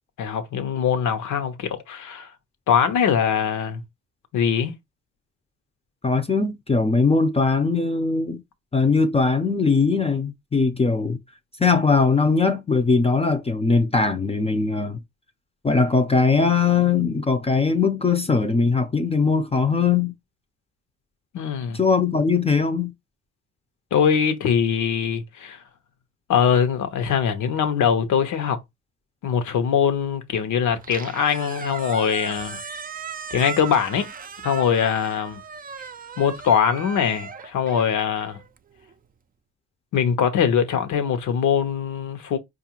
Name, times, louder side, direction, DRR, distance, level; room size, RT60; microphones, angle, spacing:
voice 1, 0.2-2.3 2.7-3.8 4.3-4.7 21.3-21.8 23.9-25.6 26.3-28.6 29.2-32.6 33.3-34.1 34.4-35.4 36.2-38.4 39.9-42.4, left 7 dB, 75° left, 0.9 m, -22 dB
voice 2, 6.0-8.4 8.7-11.2 11.6-15.0 15.6-20.1 21.7-22.9, left 4 dB, 20° left, 0.6 m, -20 dB
Squeak, 30.7-38.9, right 6 dB, 30° right, 0.4 m, -37 dB
4.7 x 2.5 x 2.9 m
cardioid pair, 90°, 30 cm